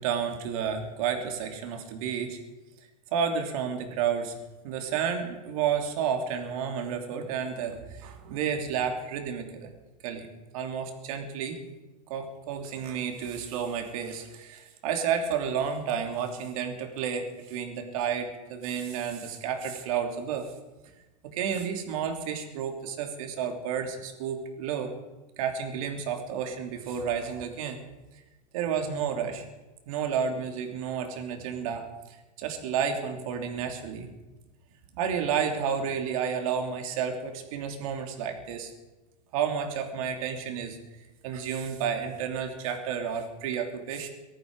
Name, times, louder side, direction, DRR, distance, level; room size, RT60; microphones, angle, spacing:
voice 1, 0.0-2.4 3.1-9.7 10.0-10.3 10.5-11.6 12.1-20.5 21.2-24.9 25.4-27.8 28.5-29.4 29.9-34.1 34.9-38.7 39.3-40.8 41.2-44.1, right 7 dB, 60° right, 5 dB, 2.9 m, -31 dB
18.5 x 14.0 x 4.8 m, 1.1 s
hypercardioid pair, 120°, 21 cm